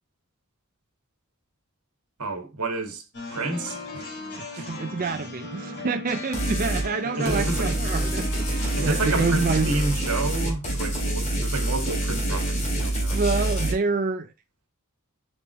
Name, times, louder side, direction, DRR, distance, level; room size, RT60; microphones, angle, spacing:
voice 1, 2.2-3.0 3.3-4.1 4.5-4.7 7.0-7.7 8.8-13.2, right 2 dB, 80° right, 1.6 m, -30 dB
sound 1, 3.1-10.0, left 2 dB, 50° left, 2.8 m, -37 dB
voice 2, 4.6-9.7 13.1-14.3, right 4 dB, 40° right, 0.4 m, -27 dB
sound 2, 6.3-6.9 7.3-13.7, right 1 dB, 30° left, 2.3 m, -26 dB
7.2 x 4.9 x 3.0 m
head